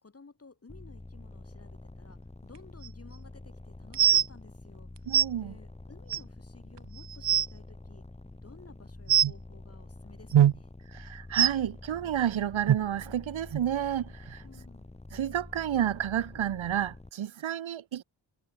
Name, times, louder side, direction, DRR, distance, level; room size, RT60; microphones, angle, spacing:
voice 1, 0.0-4.9 5.4-8.1 8.4-10.7 14.4-15.0, left 4 dB, 30° left, 6.2 m, -55 dB
sound 1, 0.7-17.1, left 2 dB, 15° left, 3.3 m, -47 dB
sound 2, 2.8-2.9 3.9-4.3 5.1-5.2 6.1-6.2 6.8-6.9 7.1-7.5 9.1-9.3 10.3-10.5 11.3-11.5 12.7-12.8 13.5-13.6 14.3-14.4, right 10 dB, 60° right, 1.1 m, -21 dB
voice 2, 5.1-5.6 10.9-14.4 15.1-18.0, right 10 dB, 80° right, 1.9 m, -31 dB
wide cardioid pair, 110°, 47 cm